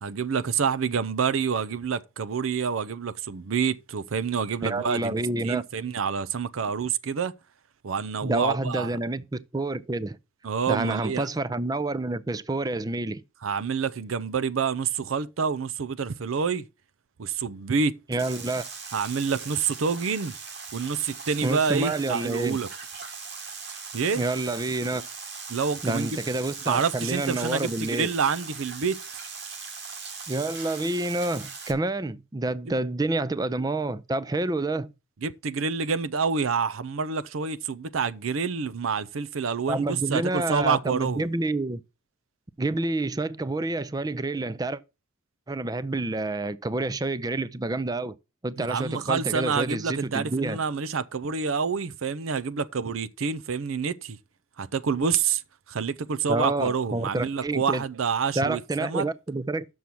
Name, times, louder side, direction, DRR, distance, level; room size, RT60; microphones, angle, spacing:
voice 1, 0.0-5.1 5.4-7.3 7.8-9.0 10.4-11.3 13.4-16.7 17.2-18.0 18.9-20.4 20.7-22.7 23.9-24.2 25.5-26.2 26.7-29.0 35.2-41.3 48.6-54.2 54.6-55.4 55.7-59.1, right 5 dB, 90° right, 0.6 m, -27 dB
voice 2, 4.6-5.6 8.2-9.2 9.5-10.2 10.7-13.2 18.1-18.6 21.4-22.6 24.2-25.0 25.8-28.1 30.3-34.9 39.7-41.8 42.6-44.8 45.5-48.2 48.4-50.6 56.3-57.8 58.4-59.7, right 2 dB, 20° right, 0.4 m, -28 dB
sound 1, 18.2-31.7, right 5 dB, 55° right, 1.7 m, -39 dB
6.9 x 6.3 x 5.9 m
head